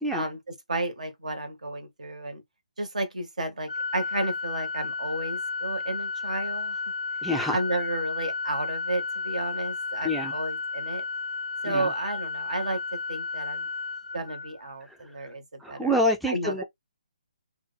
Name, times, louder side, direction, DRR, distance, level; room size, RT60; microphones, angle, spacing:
voice 1, 0.1-2.4 2.8-6.8 7.5-11.0 11.6-13.7 14.1-16.0 16.3-16.6, right 2 dB, 70° right, 1.2 m, -32 dB
Organ, 3.7-14.7, left 4 dB, 85° left, 0.4 m, -33 dB
voice 2, 7.2-7.6 10.0-10.3 11.6-11.9 14.9-15.0 15.6-16.6, equal, ahead, 0.4 m, -27 dB
2.5 x 2.2 x 3.9 m
figure-of-eight pair, 145°, 4 cm